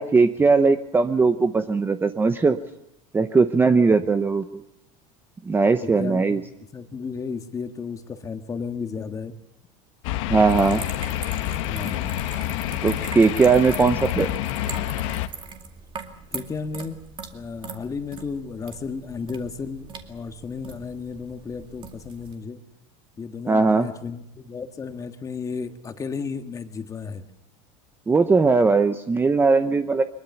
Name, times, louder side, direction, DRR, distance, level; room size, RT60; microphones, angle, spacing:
voice 1, 0.0-2.6 3.1-4.5 5.5-6.4 10.3-10.8 12.8-14.3 23.5-23.9 28.1-30.0, right 4 dB, 15° right, 9 dB, 0.8 m, -19 dB
voice 2, 5.8-6.4 6.7-9.3 11.6-12.1 16.3-17.0 17.3-22.6 23.2-27.2, left 5 dB, 20° left, 7 dB, 1.7 m, -33 dB
sound 1, 10.0-15.3, left 14 dB, 75° left, 1.5 m, -28 dB
sound 2, 10.5-22.4, right 6 dB, 30° right, 2.3 m, -41 dB
23.0 x 21.5 x 7.1 m, 0.80 s
supercardioid pair, 140°, 16 cm